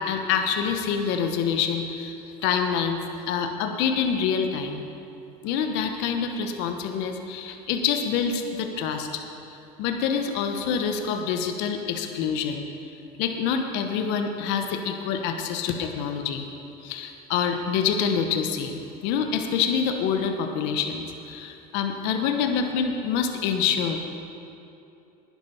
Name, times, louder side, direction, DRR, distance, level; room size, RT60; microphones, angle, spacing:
voice 1, 0.0-2.2 2.4-3.0 3.3-4.8 5.4-9.2 9.5-12.7 13.2-16.4 16.8-24.1, left 7 dB, 70° left, 5 dB, 1.1 m, -26 dB
10.5 x 10.5 x 5.5 m, 2.8 s
supercardioid pair, 105°, 19 cm